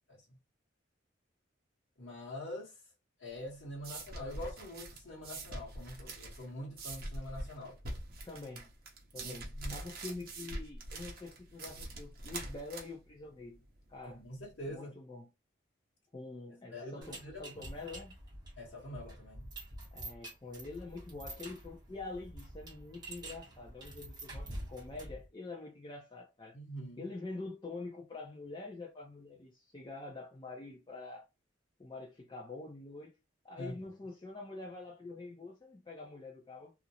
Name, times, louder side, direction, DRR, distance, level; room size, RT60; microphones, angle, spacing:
voice 1, 2.0-2.7 3.2-7.8 9.1-9.7 14.0-14.9 16.7-17.5 18.6-19.5 26.5-27.0 33.6-33.7, left 1 dB, 60° left, 0.9 m, -44 dB
sound 1, 3.3-14.7, right 2 dB, 50° right, 0.7 m, -44 dB
voice 2, 8.2-8.7 9.1-13.6 13.9-14.2 14.7-15.3 16.1-18.2 19.9-26.6 27.0-31.2 31.8-33.1 33.4-36.7, left 3 dB, 25° left, 0.4 m, -46 dB
metal chain, 17.0-25.3, right 1 dB, 20° right, 0.9 m, -47 dB
2.5 x 2.0 x 2.8 m
head